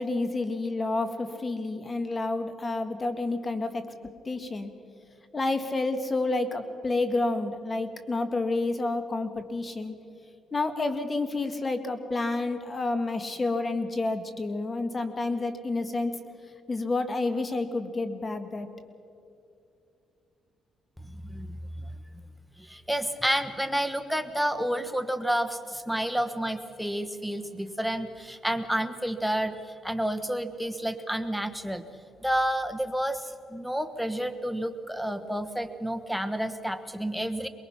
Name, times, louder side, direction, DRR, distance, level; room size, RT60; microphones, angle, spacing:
voice 1, 0.0-3.9 4.3-4.7 5.3-10.0 10.5-16.2 16.7-18.7, left 2 dB, 30° left, 8 dB, 1.9 m, -29 dB
voice 2, 21.0-21.9 22.6-31.8 32.2-37.5, equal, ahead, 11 dB, 1.3 m, -30 dB
24.0 x 21.0 x 5.9 m, 2.6 s
cardioid pair, 90°, 0 cm